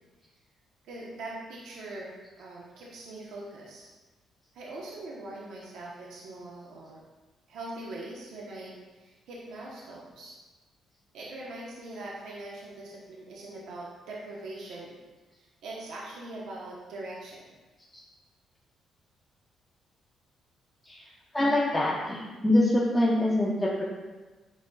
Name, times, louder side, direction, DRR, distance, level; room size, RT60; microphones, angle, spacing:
voice 1, 0.8-3.9 4.5-7.0 7.5-10.3 11.1-15.0 15.6-17.4, right 2 dB, 85° right, -4 dB, 1.1 m, -42 dB
voice 2, 21.3-23.8, left 1 dB, 15° left, -6 dB, 1.0 m, -24 dB
10.0 x 4.2 x 2.4 m, 1.2 s
cardioid pair, 90°, 0 cm